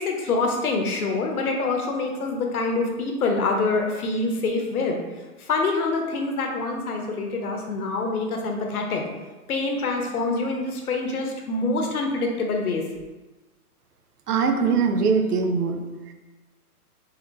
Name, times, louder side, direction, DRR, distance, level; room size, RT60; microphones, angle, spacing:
voice 1, 0.0-5.0 5.4-9.0 9.5-12.8, left 3 dB, 70° left, 2 dB, 1.0 m, -25 dB
voice 2, 14.3-16.1, right 5 dB, 80° right, 6 dB, 0.7 m, -22 dB
4.3 x 3.8 x 2.6 m, 1.2 s
hypercardioid pair, 175°, 45 cm